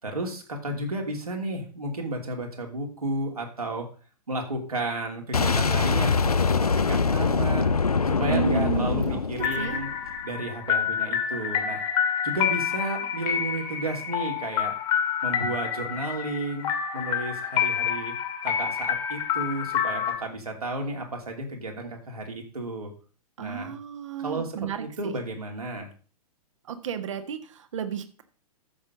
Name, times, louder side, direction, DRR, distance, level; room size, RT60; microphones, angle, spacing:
voice 1, 0.0-3.9 4.3-7.7 8.0-9.9 10.2-11.8 12.2-14.7 15.2-18.1 18.4-22.9 23.4-23.7 24.2-24.5 24.8-25.9, right 2 dB, 75° right, 1 dB, 3.1 m, -32 dB
Boom, 5.3-10.2, left 5 dB, 80° left, 0.5 m, -24 dB
voice 2, 8.3-9.8 23.4-25.1 26.6-28.2, right 7 dB, 55° right, 8 dB, 1.6 m, -32 dB
a delicate melody, 9.4-20.1, left 8 dB, 25° left, 2.1 m, -28 dB
14.0 x 7.0 x 3.9 m, 0.38 s
figure-of-eight pair, 105°, 19 cm